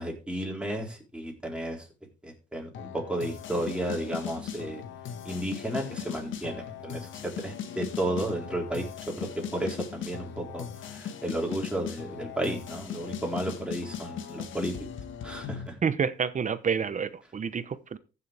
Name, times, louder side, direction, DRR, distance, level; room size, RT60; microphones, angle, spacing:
voice 1, 0.0-1.8 2.2-4.8 5.2-10.6 10.9-14.7 15.2-15.7, right 1 dB, 5° right, 4.2 m, -33 dB
sound 1, 2.7-15.7, left 8 dB, 75° left, 1.6 m, -39 dB
voice 2, 15.8-18.0, right 6 dB, 40° right, 0.9 m, -29 dB
15.0 x 6.9 x 3.5 m
cardioid pair, 90°, 20 cm